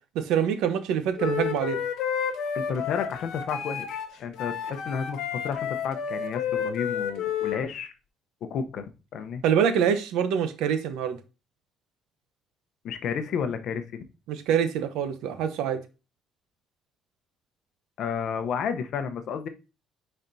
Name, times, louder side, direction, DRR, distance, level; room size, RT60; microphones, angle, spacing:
voice 1, 0.1-1.8 9.4-11.2 14.3-15.8, right 8 dB, 85° right, 0.9 m, -25 dB
Wind instrument woodwind instrument, 1.1-7.6, left 8 dB, 70° left, 1.2 m, -31 dB
voice 2, 2.5-7.9 8.4-9.4 12.8-14.0 18.0-19.5, left 6 dB, 50° left, 0.7 m, -32 dB
9.8 x 4.3 x 2.6 m
cardioid pair, 180°, 0 cm